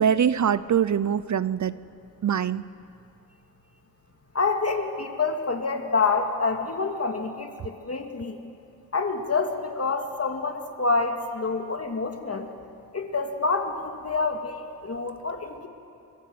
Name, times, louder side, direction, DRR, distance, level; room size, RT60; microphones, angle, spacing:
voice 1, 0.0-1.7 2.2-2.6, right 8 dB, 55° right, 17 dB, 0.6 m, -23 dB
voice 2, 4.3-8.4 8.9-12.5 12.9-15.7, left 4 dB, 45° left, 5 dB, 2.5 m, -27 dB
24.5 x 22.5 x 8.0 m, 2.6 s
cardioid pair, 70°, 35 cm